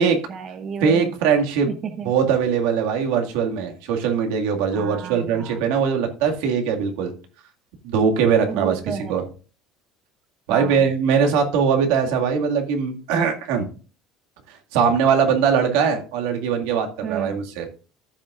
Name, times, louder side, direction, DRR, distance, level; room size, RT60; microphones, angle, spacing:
voice 1, 0.0-1.1 1.7-2.1 4.7-5.6 8.5-9.2 10.5-10.9 17.0-17.4, right 6 dB, 30° right, 8 dB, 0.7 m, -32 dB
voice 2, 0.8-1.7 2.1-7.1 7.8-8.8 9.1-9.2 10.5-13.7 14.5-17.6, right 6 dB, 85° right, 2 dB, 2.0 m, -21 dB
14.5 x 6.3 x 2.5 m, 0.37 s
cardioid pair, 165°, 0 cm